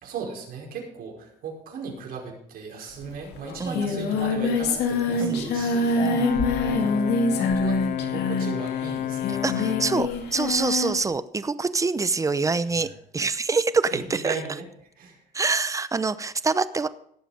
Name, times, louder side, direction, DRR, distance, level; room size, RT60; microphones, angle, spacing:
voice 1, 0.0-9.8 12.7-12.9 13.9-14.6 15.0-15.2, right 5 dB, 60° right, 0 dB, 5.2 m, -37 dB
Singing, 3.0-3.1 3.3-11.0, left 3 dB, 80° left, 2.4 m, -26 dB
Brass instrument, 5.9-10.2, left 11 dB, 55° left, 0.8 m, -30 dB
voice 2, 6.0-6.4 9.4-12.9 13.1-14.4 15.3-16.9, right 4 dB, 20° right, 15 dB, 0.7 m, -25 dB
18.0 x 7.5 x 5.0 m, 0.71 s
cardioid pair, 110°, 17 cm